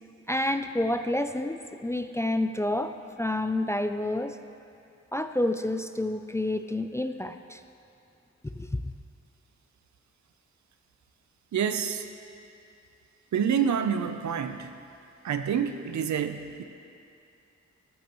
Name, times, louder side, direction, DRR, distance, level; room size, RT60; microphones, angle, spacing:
voice 1, 0.3-4.4 5.1-7.6 8.5-8.8, left 1 dB, 10° left, 8 dB, 0.4 m, -29 dB
voice 2, 11.5-12.0 13.3-14.7 15.2-16.6, right 7 dB, 75° right, 8 dB, 0.7 m, -27 dB
14.0 x 13.5 x 3.1 m, 2.6 s
cardioid pair, 95°, 29 cm